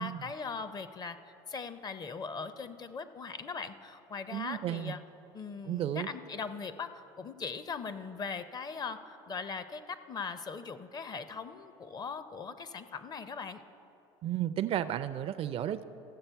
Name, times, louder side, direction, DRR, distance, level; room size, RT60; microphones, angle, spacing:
voice 1, 0.0-5.0 5.3-13.6, left 5 dB, 30° left, 12 dB, 0.5 m, -40 dB
voice 2, 4.3-4.9 5.6-6.1 14.2-15.8, right 11 dB, 45° right, 12 dB, 0.4 m, -33 dB
15.0 x 6.5 x 4.5 m, 3.0 s
supercardioid pair, 95°, 14 cm